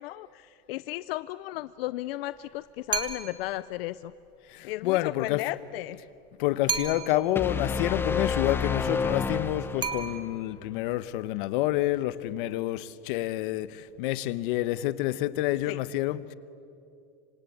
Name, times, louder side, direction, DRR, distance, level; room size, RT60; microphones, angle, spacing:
voice 1, 0.0-4.1 4.6-6.0 15.7-15.8, left 16 dB, 85° left, 0.6 m, -35 dB
sound 1, 2.9-3.5 6.7-7.4 9.8-10.6, right 6 dB, 15° right, 1.3 m, -32 dB
voice 2, 4.5-5.4 6.4-16.3, left 15 dB, 60° left, 1.0 m, -28 dB
sound 2, 7.4-10.3, left 5 dB, 10° left, 0.7 m, -29 dB
26.5 x 25.5 x 8.6 m
supercardioid pair, 175°, 29 cm